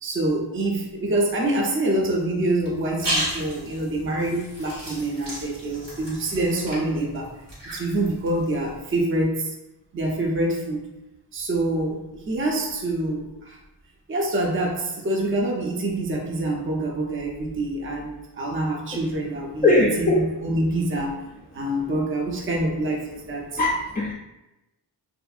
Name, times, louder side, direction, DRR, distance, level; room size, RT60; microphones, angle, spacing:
voice 1, 0.0-7.4 7.7-9.5 9.9-10.8 11.3-13.6 14.1-21.3 21.5-23.6, right 1 dB, 30° right, 0 dB, 0.5 m, -26 dB
sound 1, 2.6-8.8, equal, 85° right, 1.4 m, -34 dB
voice 2, 19.6-20.2 23.6-24.1, left 2 dB, 20° left, -3 dB, 0.3 m, -19 dB
2.7 x 2.5 x 2.4 m, 0.96 s
cardioid pair, 50°, 43 cm